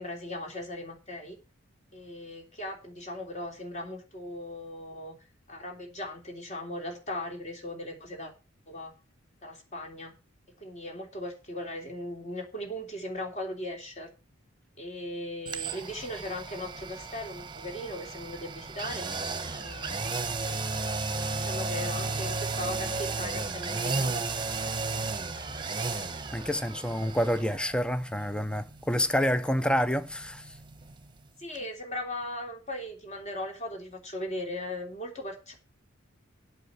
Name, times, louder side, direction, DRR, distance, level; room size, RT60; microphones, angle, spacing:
voice 1, 0.0-1.4 1.9-5.1 5.5-8.3 8.7-8.9 9.4-10.1 10.6-14.1 14.8-19.1 19.5-20.3 21.2-24.8 31.4-35.5, left 1 dB, 35° left, 3.1 m, -38 dB
sound 1, 15.5-31.3 31.6-31.7, right 3 dB, 25° right, 1.1 m, -34 dB
voice 2, 25.8-30.6, equal, 5° left, 0.6 m, -28 dB
8.4 x 6.3 x 8.0 m
head